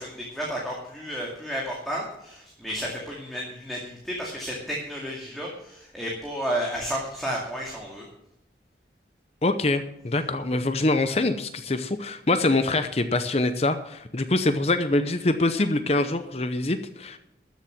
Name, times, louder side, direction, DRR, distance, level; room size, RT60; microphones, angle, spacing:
voice 1, 0.0-8.0, equal, ahead, -3 dB, 2.2 m, -32 dB
voice 2, 9.4-17.2, left 2 dB, 35° left, 9 dB, 0.7 m, -24 dB
13.5 x 7.4 x 7.4 m, 0.83 s
head